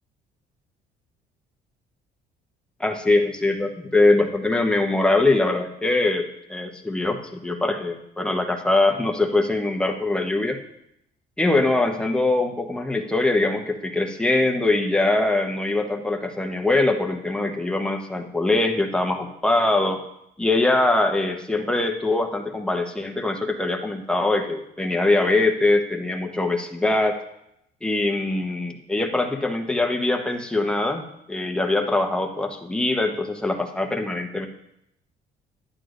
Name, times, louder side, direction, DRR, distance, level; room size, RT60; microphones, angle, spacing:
voice 1, 2.8-10.6 11.4-20.0 20.4-27.2 27.8-34.5, left 2 dB, 5° left, 3 dB, 1.0 m, -22 dB
11.0 x 9.4 x 2.6 m, 0.78 s
cardioid pair, 110°, 17 cm